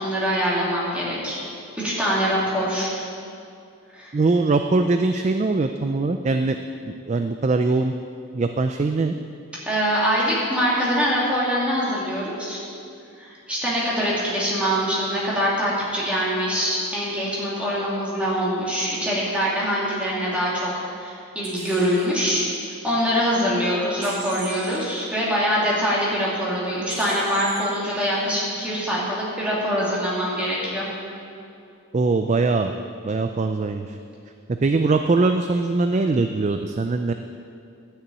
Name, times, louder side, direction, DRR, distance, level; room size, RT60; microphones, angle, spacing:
voice 1, 0.0-1.4 1.8-2.9 3.9-4.1 9.7-12.6 13.2-22.4 22.8-30.9, equal, 5° right, -7 dB, 2.6 m, -24 dB
voice 2, 4.1-6.6 6.9-7.9 8.3-9.1 31.9-32.7 33.0-34.0 34.6-37.1, right 3 dB, 30° right, 6 dB, 0.3 m, -22 dB
sound 1, 21.4-22.1 24.0-24.8 26.9-27.6, right 4 dB, 85° right, 2.2 m, -37 dB
11.0 x 6.8 x 8.5 m, 2.5 s
head